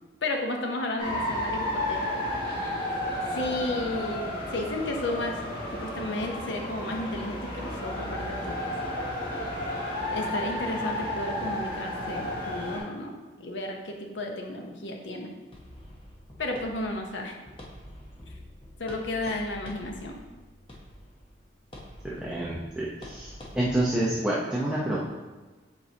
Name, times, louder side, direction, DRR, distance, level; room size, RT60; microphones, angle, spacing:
voice 1, 0.2-2.4 3.3-8.7 10.1-13.1 13.4-15.3 16.4-17.4 18.8-20.2, left 2 dB, 70° left, 2 dB, 0.8 m, -33 dB
sound 1, 1.0-12.8, left 1 dB, 45° left, 2.0 m, -32 dB
sound 2, 15.5-23.8, equal, 25° left, 0.9 m, -47 dB
voice 2, 22.0-25.0, right 1 dB, 5° right, -7 dB, 0.7 m, -28 dB
7.3 x 4.7 x 2.8 m, 1.2 s
head